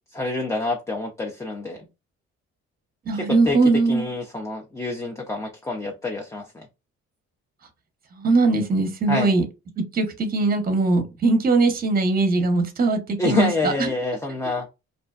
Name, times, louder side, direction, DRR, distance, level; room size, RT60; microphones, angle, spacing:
voice 1, 0.1-1.8 3.1-3.6 3.9-6.7 9.1-9.3 13.2-14.7, left 2 dB, 10° left, 0.4 m, -27 dB
voice 2, 3.1-4.1 8.1-9.4 9.9-13.9, right 3 dB, 30° right, 0.7 m, -21 dB
2.5 x 2.1 x 2.3 m
cardioid pair, 90°, 30 cm